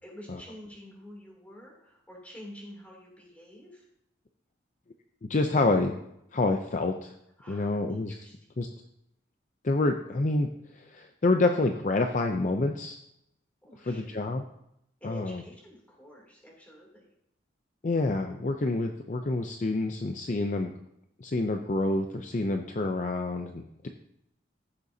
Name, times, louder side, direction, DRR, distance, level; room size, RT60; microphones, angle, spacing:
voice 1, 0.0-3.8 7.4-8.3 13.6-14.3 15.0-17.1, equal, 10° left, -3 dB, 2.8 m, -48 dB
voice 2, 5.2-6.0 6.3-7.1 7.5-8.1 8.6-8.7 9.6-10.5 10.7-13.0 13.8-14.4 15.0-15.4 17.8-20.7 21.2-23.9, left 2 dB, 40° left, 4 dB, 0.5 m, -27 dB
15.0 x 6.8 x 2.7 m, 0.79 s
head